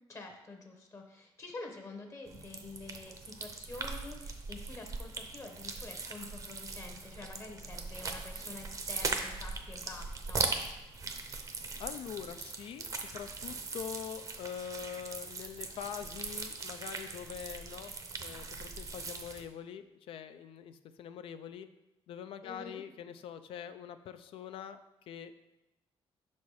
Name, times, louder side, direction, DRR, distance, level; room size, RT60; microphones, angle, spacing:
voice 1, 0.1-10.4 22.4-22.8, left 3 dB, 30° left, 3 dB, 0.9 m, -47 dB
sound 1, 2.3-19.4, right 4 dB, 35° right, 0.7 m, -40 dB
voice 2, 11.8-17.9 18.2-21.7 22.1-24.8 25.1-25.3, left 8 dB, 70° left, 10 dB, 0.4 m, -44 dB
6.2 x 4.2 x 4.7 m, 0.96 s
cardioid pair, 140°, 10 cm